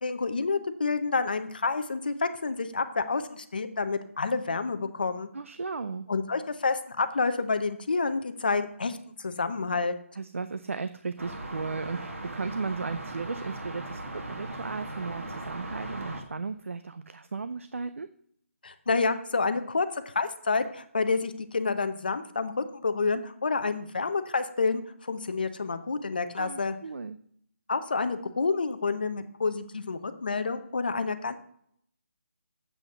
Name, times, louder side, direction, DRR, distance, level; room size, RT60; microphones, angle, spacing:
voice 1, 0.0-5.3 6.1-9.9 18.6-26.7 27.7-31.3, left 4 dB, 40° left, 10 dB, 0.8 m, -29 dB
voice 2, 5.3-6.1 10.2-18.1 26.4-27.2, right 4 dB, 70° right, 11 dB, 0.6 m, -35 dB
sound 1, 11.2-16.2, right 2 dB, 90° right, 2.1 m, -38 dB
7.9 x 6.1 x 6.6 m, 0.67 s
hypercardioid pair, 180°, 7 cm